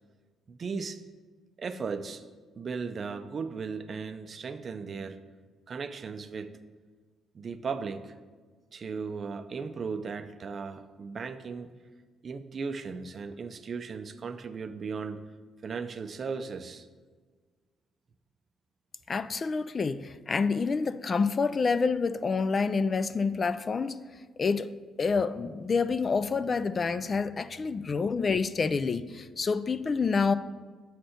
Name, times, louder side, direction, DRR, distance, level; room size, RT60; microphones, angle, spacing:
voice 1, 0.5-1.0 1.6-2.2 2.6-5.2 5.7-6.6 7.3-8.1 8.7-11.7 12.2-15.2 15.6-16.9, right 5 dB, 45° right, 10 dB, 0.5 m, -36 dB
voice 2, 19.1-24.0 24.4-24.7 25.0-30.3, left 4 dB, 40° left, 13 dB, 0.3 m, -28 dB
6.6 x 4.3 x 6.4 m, 1.5 s
cardioid pair, 90°, 0 cm